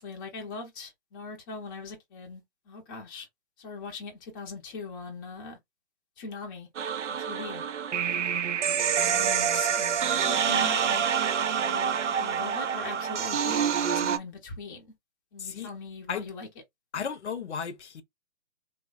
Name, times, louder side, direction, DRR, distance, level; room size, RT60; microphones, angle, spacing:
voice 1, 0.0-3.3 3.6-5.6 6.2-6.7 7.1-7.6 9.0-11.3 11.6-14.9 15.3-16.5, left 4 dB, 20° left, 0.5 m, -41 dB
sound 1, 6.7-14.2, right 8 dB, 80° right, 0.5 m, -27 dB
voice 2, 15.4-15.7 16.1-16.3 16.9-18.0, left 7 dB, 70° left, 0.7 m, -34 dB
3.1 x 2.1 x 2.4 m
figure-of-eight pair, 135°, 35 cm